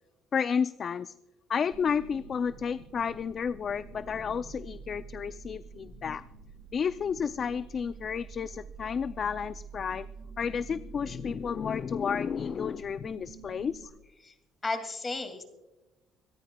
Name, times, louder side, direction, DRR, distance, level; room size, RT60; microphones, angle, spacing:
voice 1, 0.3-1.1 1.5-6.2 6.7-10.1 10.4-13.9, left 7 dB, 45° left, 14 dB, 0.3 m, -31 dB
sound 1, 1.7-13.9, right 6 dB, 65° right, 5.1 m, -48 dB
voice 2, 14.6-15.4, left 3 dB, 25° left, 7 dB, 2.3 m, -33 dB
26.0 x 14.0 x 2.2 m, 1.0 s
cardioid pair, 105°, 0 cm